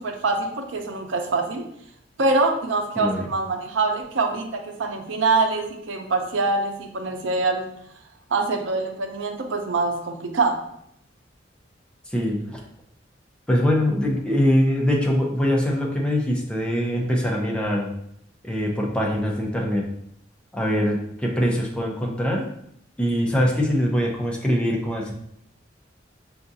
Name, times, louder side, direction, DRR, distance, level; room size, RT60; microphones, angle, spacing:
voice 1, 0.0-1.6 2.2-7.7 8.3-10.7, right 3 dB, 85° right, 4 dB, 0.6 m, -24 dB
voice 2, 3.0-3.3 12.1-12.6 13.5-17.9 18.4-19.8 20.5-22.5 23.0-25.1, equal, 5° left, -2 dB, 0.6 m, -23 dB
6.4 x 2.4 x 2.7 m, 0.72 s
head